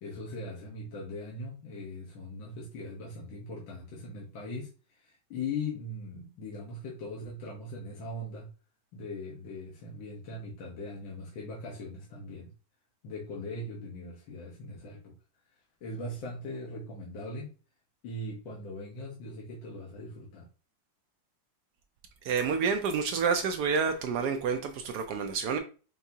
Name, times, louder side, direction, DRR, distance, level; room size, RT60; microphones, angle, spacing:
voice 1, 0.0-4.7 5.0-8.5 8.9-12.5 13.0-15.1 15.8-17.5 18.0-20.5, left 2 dB, 70° left, 1.8 m, -40 dB
voice 2, 22.2-25.6, right 5 dB, 75° right, 0.9 m, -28 dB
5.8 x 2.8 x 2.7 m
omnidirectional pair, 2.2 m